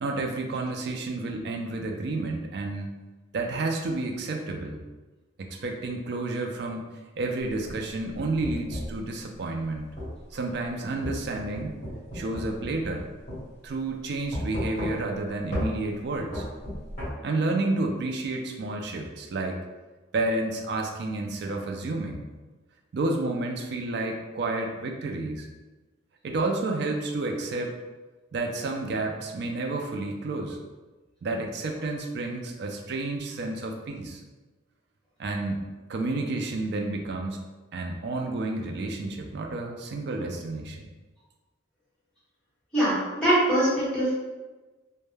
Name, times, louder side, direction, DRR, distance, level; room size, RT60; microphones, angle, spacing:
voice 1, 0.0-2.9 3.3-4.8 5.4-6.9 7.2-9.9 10.3-11.8 12.1-13.1 13.6-16.5 17.2-19.6 20.1-22.2 22.9-25.5 26.2-27.8 28.3-30.6 31.2-34.2 35.2-35.6 35.9-37.4 37.7-40.9, right 2 dB, 55° right, 2 dB, 0.3 m, -30 dB
sound 1, 7.5-9.0 10.0-10.1 11.0-13.0 13.3-13.4 14.3-15.2 15.5-15.7 16.3-17.1, equal, 35° left, 0.9 m, -33 dB
voice 2, 42.7-44.1, right 1 dB, 5° left, -11 dB, 1.0 m, -23 dB
2.1 x 2.1 x 3.1 m, 1.2 s
head